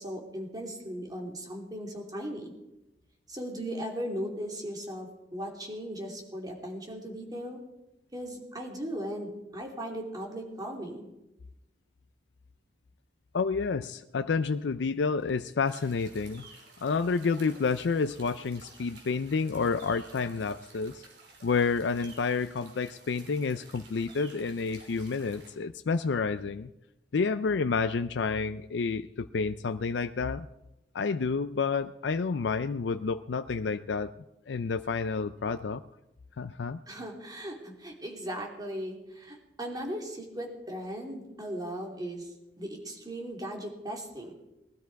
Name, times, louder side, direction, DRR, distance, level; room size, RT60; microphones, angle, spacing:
voice 1, 0.0-2.5 3.3-7.6 8.1-11.1 36.9-44.3, equal, 25° right, 1 dB, 2.9 m, -38 dB
voice 2, 13.3-16.5 16.8-21.0 21.4-26.7 27.1-30.5 30.9-34.1 34.5-35.8 36.4-36.8, left 4 dB, 90° left, 10 dB, 0.5 m, -29 dB
sound 1, 15.6-25.6, right 3 dB, 70° right, 3.6 m, -53 dB
20.0 x 12.5 x 4.7 m, 0.94 s
head